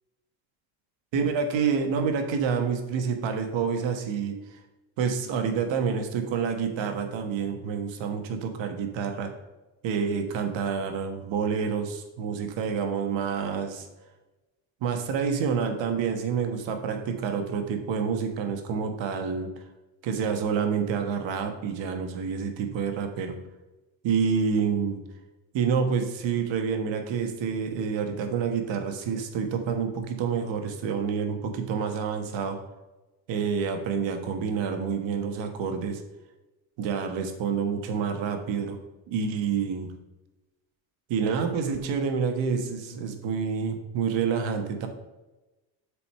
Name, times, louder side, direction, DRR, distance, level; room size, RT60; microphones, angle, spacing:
voice 1, 1.1-4.3 5.0-9.3 9.8-13.9 14.8-19.5 20.0-23.3 24.0-25.0 25.5-32.6 33.3-36.0 36.8-38.8 39.1-39.9 41.1-44.9, right 6 dB, 70° right, 6 dB, 1.4 m, -28 dB
6.9 x 4.8 x 5.5 m, 1.1 s
cardioid pair, 110°, 46 cm